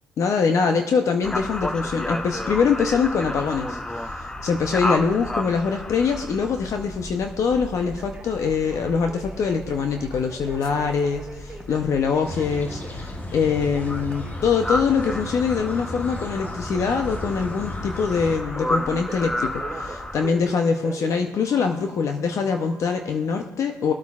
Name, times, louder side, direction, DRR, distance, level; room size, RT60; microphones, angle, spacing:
voice 1, 0.2-4.1 4.4-23.9, left 5 dB, 55° left, 5 dB, 0.7 m, -23 dB
sound 1, 1.2-20.3, left 1 dB, 10° left, 0.7 m, -32 dB
Telephone, 4.5-5.0 7.8-22.0 22.5-23.0, right 3 dB, 20° right, 3.1 m, -43 dB
sound 2, 12.2-18.4, left 1 dB, 25° left, 1.1 m, -35 dB
19.5 x 8.2 x 2.4 m, 1.3 s
cardioid pair, 100°, 7 cm